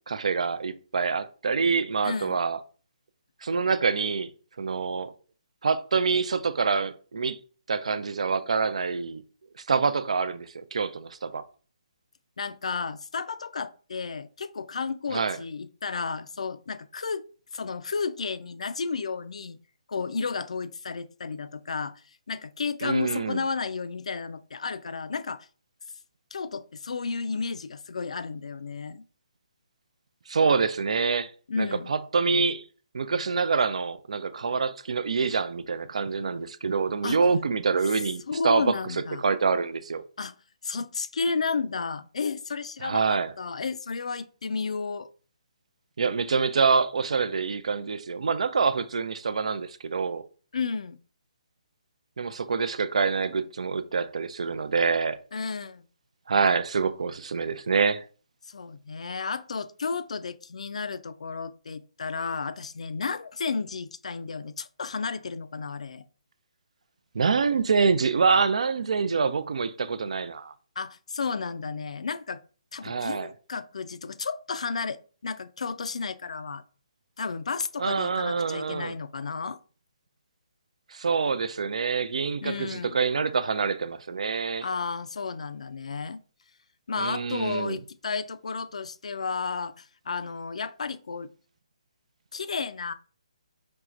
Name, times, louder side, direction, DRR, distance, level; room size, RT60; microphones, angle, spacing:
voice 1, 0.1-2.6 3.4-4.3 4.6-5.1 5.6-7.4 7.7-9.2 9.7-11.4 15.1-15.4 22.8-23.4 30.3-31.3 31.6-32.6 32.9-38.7 39.2-40.0 42.8-43.3 46.0-50.2 52.2-55.2 56.3-58.0 67.1-70.5 72.8-73.3 77.8-78.9 80.9-84.7 87.0-87.8, right 5 dB, 70° right, 0.4 m, -26 dB
voice 2, 2.0-2.4 12.4-17.2 17.5-19.6 19.9-22.0 22.3-25.5 26.3-29.0 31.5-31.9 37.0-37.2 38.3-39.2 40.2-40.3 40.6-45.1 50.5-51.0 55.3-55.9 58.4-66.0 70.8-72.4 72.7-76.6 77.2-79.6 82.4-83.0 84.6-86.2 86.9-91.3 92.3-92.9, left 5 dB, 75° left, 0.4 m, -32 dB
4.5 x 3.1 x 2.4 m
hypercardioid pair, 150°, 4 cm